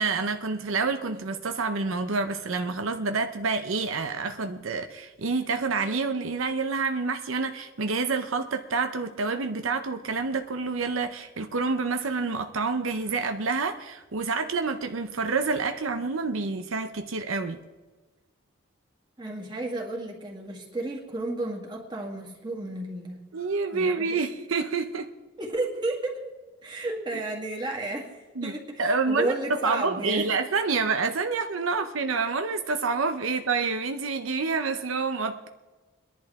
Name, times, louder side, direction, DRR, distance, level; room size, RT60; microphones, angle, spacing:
voice 1, 0.0-17.6 23.3-25.1 28.4-35.5, right 4 dB, 80° right, 0.8 m, -28 dB
voice 2, 19.2-23.2 23.7-24.2 25.4-26.3 26.6-30.4, right 2 dB, 20° right, 2.1 m, -32 dB
23.0 x 11.0 x 3.6 m
head